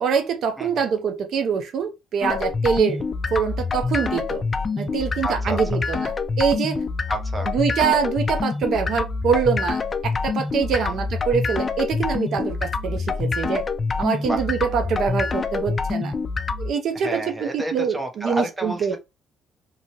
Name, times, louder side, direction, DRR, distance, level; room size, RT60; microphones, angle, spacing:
voice 1, 0.0-3.0 3.3-4.4 4.8-6.1 6.4-6.8 7.5-13.6 14.0-16.1 16.6-19.0, right 6 dB, 60° right, 0.5 m, -24 dB
voice 2, 0.6-0.9 5.2-5.8 7.1-7.5 10.7-11.0 14.3-14.5 16.9-19.0, right 1 dB, 10° right, 0.7 m, -30 dB
sound 1, 2.2-16.7, left 4 dB, 30° left, 0.3 m, -26 dB
2.7 x 2.6 x 2.8 m
cardioid pair, 135°, 0 cm